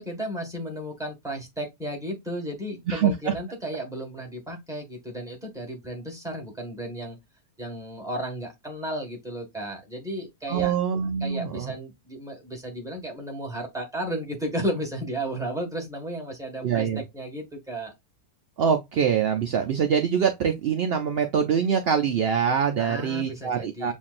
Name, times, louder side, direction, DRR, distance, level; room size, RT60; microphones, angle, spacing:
voice 1, 0.0-7.2 7.6-10.7 11.2-17.9 22.8-23.9, right 1 dB, ahead, 1.4 m, -34 dB
voice 2, 2.9-3.3 10.5-11.8 16.6-17.0 18.6-23.9, right 7 dB, 70° right, 0.6 m, -24 dB
7.2 x 2.6 x 2.5 m
omnidirectional pair, 1.6 m